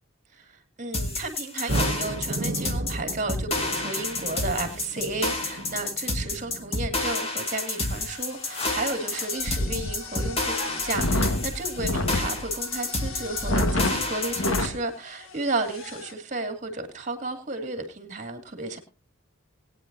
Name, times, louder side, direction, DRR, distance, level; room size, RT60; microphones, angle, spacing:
voice 1, 0.3-18.8, right 2 dB, 35° right, 2.3 m, -33 dB
sound 1, 0.9-14.6, left 2 dB, 30° left, 1.9 m, -29 dB
sound 2, 1.7-6.7, right 1 dB, 55° right, 0.9 m, -34 dB
sound 3, 8.1-14.8 15.3-15.4 15.7-16.1, left 1 dB, 85° left, 1.5 m, -30 dB
20.5 x 9.5 x 2.7 m
head